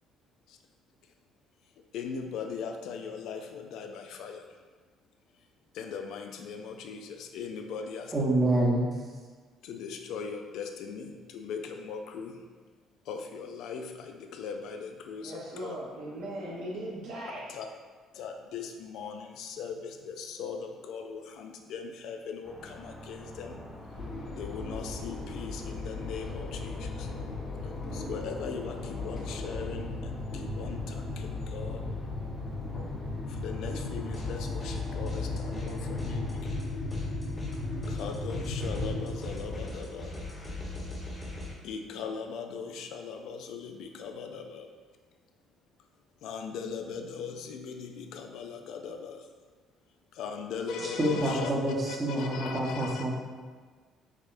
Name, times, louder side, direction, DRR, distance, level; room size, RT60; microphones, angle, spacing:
voice 1, 1.8-4.5 5.7-8.1 9.6-12.4 13.1-15.7 17.3-17.7 18.1-23.7 24.3-27.1 27.6-31.8 33.3-36.5 37.9-40.2 41.6-44.7 46.2-49.3 50.1-51.5 51.9-53.1, left 6 dB, 75° left, 5 dB, 0.3 m, -39 dB
voice 2, 8.1-8.9 51.0-53.2, right 1 dB, 35° right, -3 dB, 0.9 m, -27 dB
voice 3, 15.2-17.5, right 1 dB, 75° right, -5 dB, 1.0 m, -38 dB
sound 1, 22.4-36.4, left 1 dB, 5° left, 0.5 m, -45 dB
sound 2, 23.9-39.6, left 2 dB, 55° left, 0.9 m, -36 dB
sound 3, 34.1-34.8 35.0-41.5, left 2 dB, 25° left, 1.1 m, -41 dB
4.8 x 2.1 x 2.5 m, 1.5 s
supercardioid pair, 80°, 0 cm